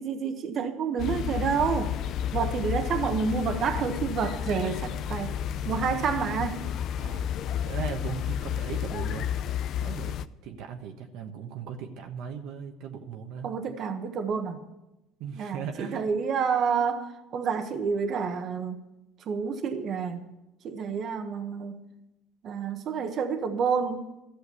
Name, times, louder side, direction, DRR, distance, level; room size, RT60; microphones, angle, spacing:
voice 1, 0.0-2.0 2.3-5.4 5.6-6.7 13.4-14.6 15.3-18.8 19.2-20.3 20.6-21.8 22.4-24.1, right 6 dB, 50° right, 7 dB, 1.3 m, -29 dB
sound 1, 1.0-10.3, left 10 dB, 55° left, 0.5 m, -31 dB
voice 2, 6.9-7.3 7.6-9.4 9.8-10.2 10.4-13.5 15.2-16.1, right 7 dB, 70° right, 4 dB, 1.3 m, -38 dB
13.5 x 6.5 x 9.7 m, 0.94 s
supercardioid pair, 100°, 0 cm